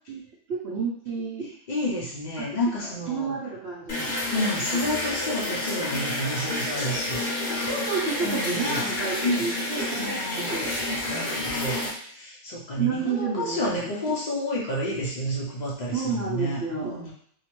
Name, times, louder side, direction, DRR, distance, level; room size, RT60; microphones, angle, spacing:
voice 1, 0.5-1.5 2.4-2.5 3.1-4.2 7.6-10.7 12.8-14.1 15.9-17.1, right 5 dB, 65° right, -4 dB, 0.6 m, -30 dB
voice 2, 1.4-3.4 4.3-7.3 8.2-8.8 9.2-9.5 9.9-10.6 11.1-17.1, left 1 dB, 80° left, -5 dB, 0.4 m, -30 dB
sound 1, 3.9-11.9, left 1 dB, 40° left, 0.7 m, -29 dB
2.7 x 2.1 x 2.9 m, 0.62 s
omnidirectional pair, 1.5 m